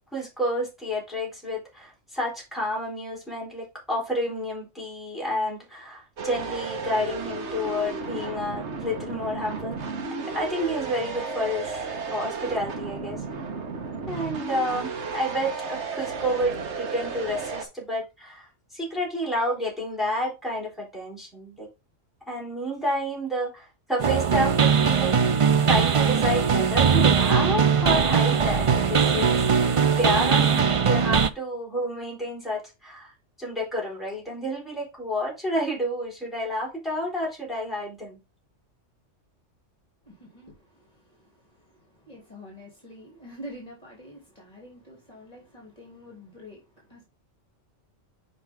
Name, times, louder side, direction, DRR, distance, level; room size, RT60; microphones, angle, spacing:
voice 1, 0.0-9.8 10.2-13.2 14.1-21.7 22.3-25.1 25.7-33.1 33.4-38.2, equal, ahead, 4.2 m, -30 dB
sound 1, 6.2-17.7, right 4 dB, 65° right, 1.4 m, -33 dB
sound 2, 24.0-31.3, right 6 dB, 45° right, 0.4 m, -20 dB
voice 2, 40.0-47.0, equal, 30° left, 3.0 m, -46 dB
7.6 x 5.3 x 3.5 m
omnidirectional pair, 1.2 m